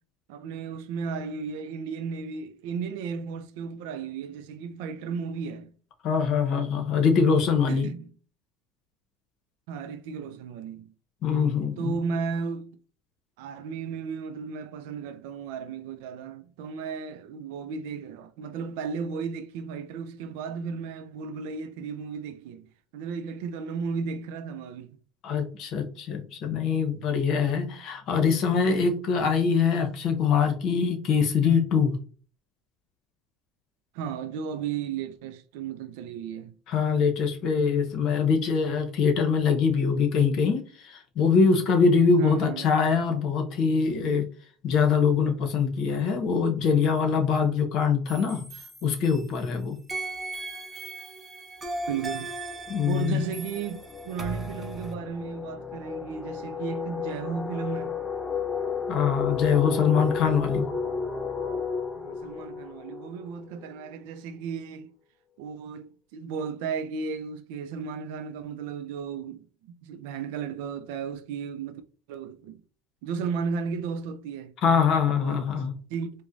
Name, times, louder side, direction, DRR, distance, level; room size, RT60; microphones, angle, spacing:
voice 1, 0.3-5.7 7.7-8.1 9.7-10.9 11.8-12.7 13.4-22.7 22.9-25.0 33.9-36.5 42.2-42.7 51.9-52.3 52.9-58.0 62.0-64.9 65.4-69.4 69.8-71.8 72.1-72.6 73.0-74.5 75.2-75.5 75.9-76.1, right 6 dB, 80° right, 0.4 m, -34 dB
voice 2, 6.0-7.9 11.2-11.9 25.2-32.0 36.7-44.2 44.6-48.5 48.8-49.8 52.7-53.2 58.9-60.7 74.6-75.7, left 6 dB, 55° left, 0.9 m, -23 dB
sound 1, 48.1-49.5 49.9-54.9, right 2 dB, 15° right, 0.7 m, -37 dB
sound 2, 51.8-52.0 52.3-63.9, left 5 dB, 15° left, 0.5 m, -33 dB
4.7 x 2.1 x 2.6 m
supercardioid pair, 125°, 0 cm